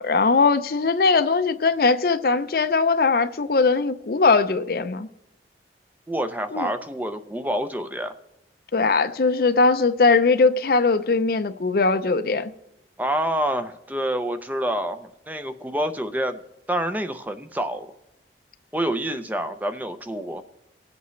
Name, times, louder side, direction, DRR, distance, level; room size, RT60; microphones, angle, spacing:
voice 1, 0.0-5.1 6.5-6.7 8.7-12.5, left 4 dB, 55° left, 0.5 m, -20 dB
voice 2, 6.1-8.1 13.0-16.4 16.7-17.9 18.7-20.4, right 1 dB, 10° right, 0.5 m, -27 dB
24.5 x 8.1 x 3.1 m
head